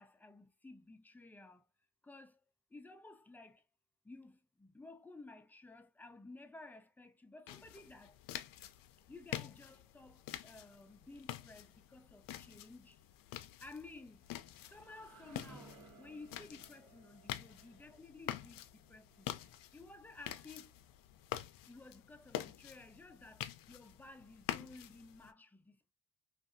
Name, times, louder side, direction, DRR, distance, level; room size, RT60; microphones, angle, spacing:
voice 1, 0.0-1.7 2.0-2.4 2.7-3.6 4.0-8.2 9.1-13.0 13.6-14.2 14.6-19.3 19.7-20.7 21.7-25.9, left 2 dB, 5° left, 0.4 m, -55 dB
sound 1, 7.5-25.3, left 13 dB, 65° left, 0.5 m, -47 dB
sound 2, 14.1-19.9, right 3 dB, 60° right, 1.1 m, -61 dB
2.6 x 2.4 x 2.4 m
cardioid pair, 80°, 36 cm